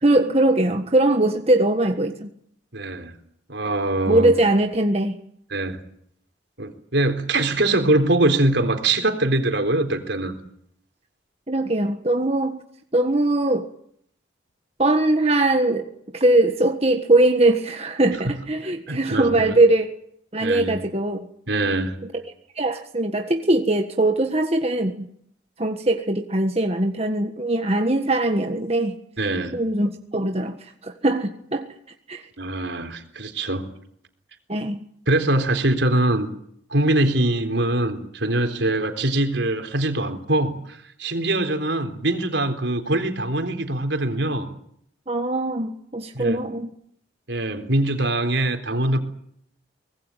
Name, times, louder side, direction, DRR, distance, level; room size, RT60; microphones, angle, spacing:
voice 1, 0.0-2.3 4.1-5.2 11.5-12.6 12.9-13.7 14.8-19.9 20.3-21.3 22.5-25.1 25.6-29.0 29.5-31.7 32.1-32.3 34.5-34.8 45.1-46.7, right 2 dB, 35° right, 5 dB, 1.6 m, -21 dB
voice 2, 2.7-3.1 3.5-4.3 5.5-5.8 6.6-10.4 18.3-18.4 18.9-19.6 20.4-20.8 21.5-22.0 29.2-29.6 32.4-33.7 35.1-36.3 36.7-44.5 46.1-46.4 47.3-49.0, right 2 dB, 70° right, 7 dB, 3.9 m, -23 dB
24.5 x 20.0 x 9.2 m, 0.68 s
head